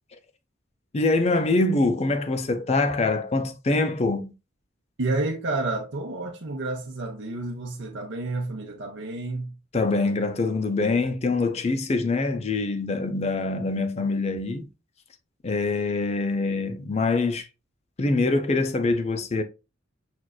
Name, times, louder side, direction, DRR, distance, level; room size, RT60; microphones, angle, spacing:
voice 1, 0.9-4.3 9.7-14.7 15.4-17.5 18.0-19.4, left 3 dB, 30° left, 0.5 m, -24 dB
voice 2, 5.0-9.5, right 2 dB, 60° right, 0.6 m, -30 dB
6.0 x 2.5 x 2.3 m
head